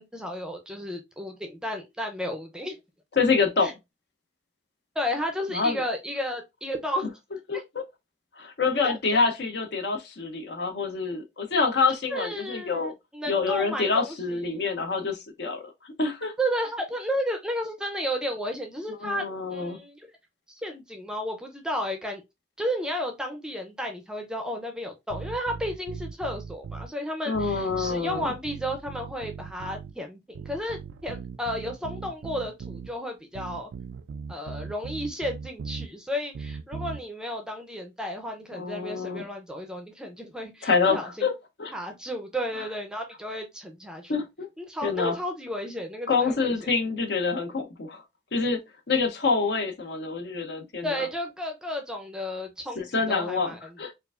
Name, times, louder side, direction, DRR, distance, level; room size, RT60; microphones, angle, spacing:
voice 1, 0.0-2.8 3.6-3.7 5.0-7.1 7.5-7.6 8.8-8.9 12.1-14.6 16.4-19.2 19.5-20.1 20.5-22.2 22.6-33.7 34.3-41.3 41.7-44.1 44.6-46.5 50.8-53.6, equal, 5° right, 0.5 m, -33 dB
voice 2, 3.2-3.7 5.5-5.8 7.5-7.8 8.4-12.9 13.3-16.3 19.0-19.8 27.3-28.3 38.5-39.3 40.6-41.3 41.6-41.7 44.1-44.5 44.8-45.2 46.1-48.0 48.3-48.6 48.9-51.1 52.8-53.9, left 4 dB, 65° left, 0.6 m, -26 dB
sound 1, 25.1-26.9 27.3-30.0 30.3-32.9 33.3-35.9 36.3-37.0, right 5 dB, 85° right, 0.3 m, -39 dB
4.4 x 2.4 x 2.3 m
head